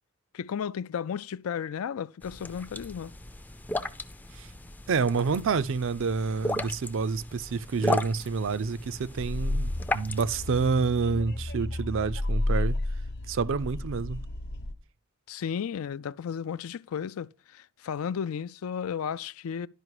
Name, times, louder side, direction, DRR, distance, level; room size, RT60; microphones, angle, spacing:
voice 1, 0.3-3.1 15.3-19.7, left 7 dB, 70° left, 0.4 m, -34 dB
sound 1, 2.2-10.7, left 2 dB, 10° left, 0.4 m, -36 dB
voice 2, 4.9-12.8 13.3-14.2, right 5 dB, 60° right, 0.5 m, -28 dB
sound 2, 9.2-14.7, left 1 dB, 50° left, 0.9 m, -32 dB
11.0 x 5.1 x 4.8 m
head